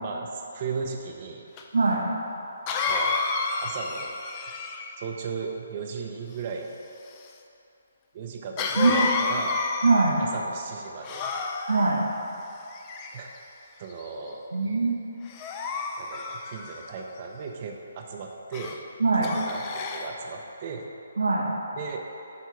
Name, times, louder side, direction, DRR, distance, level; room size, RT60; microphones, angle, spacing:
voice 1, 0.0-1.4 2.9-3.2 3.6-4.5 5.0-6.8 8.1-9.6 10.2-11.3 13.1-13.3 13.8-14.4 16.0-18.8 19.2-20.8 21.7-22.0, right 5 dB, 40° right, 1 dB, 0.6 m, -36 dB
Cough, 1.6-1.7 2.7-5.0 8.6-10.3 11.0-11.9 12.7-13.4 14.0-14.3 15.3-16.9 18.5-18.8 19.2-20.1, left 4 dB, 25° left, 0.5 m, -30 dB
voice 2, 8.8-9.1 9.8-10.2 11.7-12.0 14.5-15.0 19.0-19.3 21.2-21.5, right 3 dB, 90° right, -2 dB, 1.1 m, -22 dB
9.1 x 3.6 x 5.7 m, 2.8 s
hypercardioid pair, 150°, 0 cm